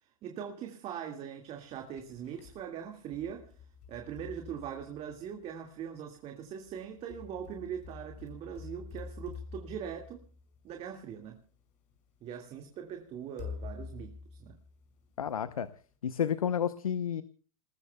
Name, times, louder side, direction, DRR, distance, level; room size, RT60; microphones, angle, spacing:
voice 1, 0.0-3.6 3.9-10.2 10.6-11.4 12.2-14.6, right 8 dB, 35° right, 2.1 m, -41 dB
sound 1, 1.6-2.6 3.1-5.5 6.7-11.1 11.9-12.0 13.4-15.3, left 5 dB, 45° left, 6.0 m, -47 dB
voice 2, 15.2-15.7 16.0-17.2, left 8 dB, 85° left, 0.9 m, -31 dB
28.5 x 20.0 x 2.3 m
hypercardioid pair, 105°, 18 cm